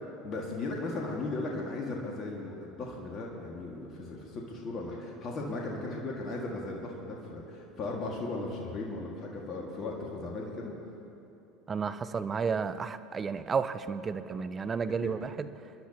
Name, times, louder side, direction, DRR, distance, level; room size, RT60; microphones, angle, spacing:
voice 1, 0.2-10.7, left 2 dB, 40° left, -1 dB, 1.9 m, -37 dB
voice 2, 11.7-15.5, right 5 dB, 30° right, 12 dB, 0.6 m, -32 dB
28.5 x 10.5 x 2.9 m, 2.8 s
hypercardioid pair, 75°, 0 cm